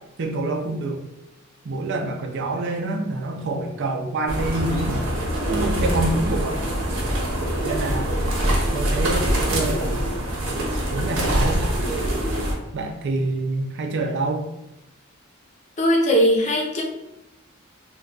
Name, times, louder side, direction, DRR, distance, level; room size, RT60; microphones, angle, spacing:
voice 1, 0.2-1.0 1.6-5.1 5.5-6.6 7.6-8.2 8.7-10.1 10.9-11.6 12.7-14.4, right 2 dB, 60° right, 3 dB, 0.5 m, -26 dB
sound 1, 4.3-12.5, right 1 dB, 75° right, 0.9 m, -24 dB
voice 2, 15.8-16.8, equal, 35° left, -1 dB, 0.6 m, -19 dB
2.3 x 2.3 x 3.9 m, 0.92 s
head